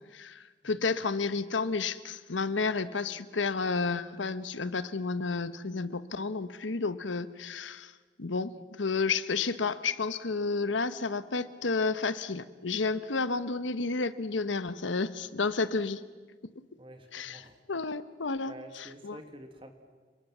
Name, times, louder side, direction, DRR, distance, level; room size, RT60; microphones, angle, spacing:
voice 1, 0.1-7.9 8.2-16.0 17.1-19.2, left 4 dB, 85° left, 14 dB, 1.1 m, -31 dB
voice 2, 16.8-17.5 18.5-19.7, right 1 dB, 25° right, 6 dB, 1.8 m, -48 dB
29.5 x 22.0 x 7.4 m, 1.4 s
head